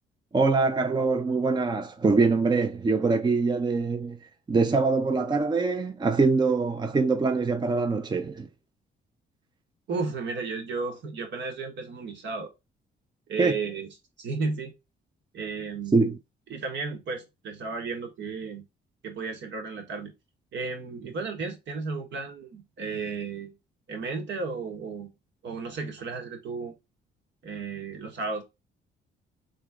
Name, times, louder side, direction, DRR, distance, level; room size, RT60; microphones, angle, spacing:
voice 1, 0.3-4.2 4.5-8.5 13.4-13.6 15.9-16.2, right 4 dB, 20° right, 0.6 m, -24 dB
voice 2, 9.9-12.5 13.3-13.9 14.2-14.7 15.3-16.2 16.5-18.6 19.0-20.1 20.5-23.6 23.9-25.1 25.4-26.7 27.4-28.4, right 4 dB, 65° right, 1.5 m, -33 dB
3.5 x 3.2 x 3.5 m
cardioid pair, 90°, 20 cm